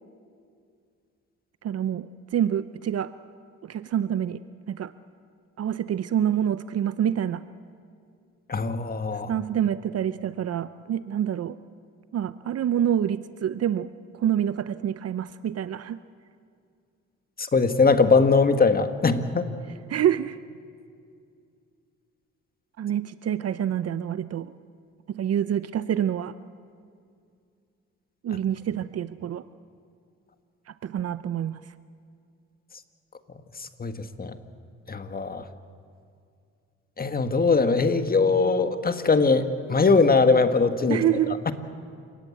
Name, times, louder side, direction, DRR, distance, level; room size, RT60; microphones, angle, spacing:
voice 1, 1.6-3.1 3.6-4.4 4.7-4.9 5.6-7.4 9.3-11.6 12.1-16.0 19.9-20.4 22.8-24.5 25.1-26.4 28.2-29.4 30.7-31.6 40.9-41.4, right 10 dB, 55° right, 14 dB, 0.7 m, -27 dB
voice 2, 8.5-9.3 17.4-19.5 33.6-34.4 34.9-35.4 37.0-41.0 41.5-41.6, left 4 dB, 30° left, 9 dB, 1.7 m, -21 dB
29.0 x 18.0 x 8.5 m, 2.3 s
cardioid pair, 90°, 30 cm